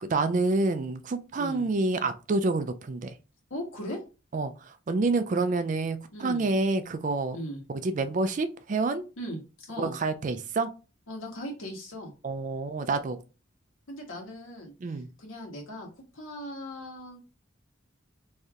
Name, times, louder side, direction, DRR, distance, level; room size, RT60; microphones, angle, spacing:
voice 1, 0.0-3.1 4.3-4.5 4.9-7.4 7.7-9.1 9.8-10.7 12.2-13.2 14.8-15.1, right 3 dB, 40° right, 0.3 m, -28 dB
voice 2, 1.4-1.7 3.5-4.0 6.1-6.5 7.3-7.6 9.2-9.9 11.1-12.1 13.9-17.2, equal, 85° left, 1.3 m, -39 dB
3.2 x 2.7 x 3.6 m
head